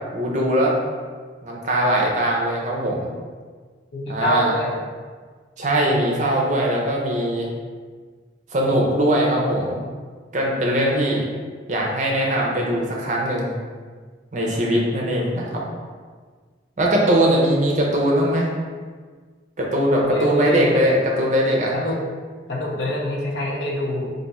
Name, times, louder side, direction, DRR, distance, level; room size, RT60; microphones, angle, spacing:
voice 1, 0.1-0.7 1.4-3.1 4.1-4.5 5.6-7.5 8.5-9.8 10.3-11.3 11.7-13.6 14.3-15.6 16.8-18.5 19.6-21.7, right 1 dB, 40° right, -2 dB, 0.6 m, -20 dB
voice 2, 3.9-4.8 10.6-11.0 20.0-20.7 21.7-22.0 22.5-24.1, left 1 dB, 70° left, -2 dB, 0.7 m, -26 dB
3.4 x 2.6 x 4.1 m, 1.5 s
head